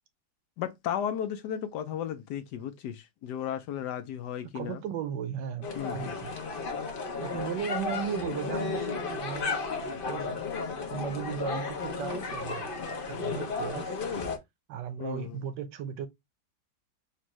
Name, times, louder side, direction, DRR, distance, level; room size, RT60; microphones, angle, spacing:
voice 1, 0.6-4.8 5.7-6.1 15.0-15.4, left 9 dB, 75° left, 1.1 m, -34 dB
voice 2, 4.5-6.3 7.2-9.6 10.1-10.5 10.9-12.7 13.1-14.0 14.7-16.1, right 8 dB, 80° right, 1.3 m, -36 dB
sound 1, 5.6-14.4, left 4 dB, 55° left, 0.6 m, -34 dB
4.4 x 2.5 x 3.0 m
omnidirectional pair, 2.0 m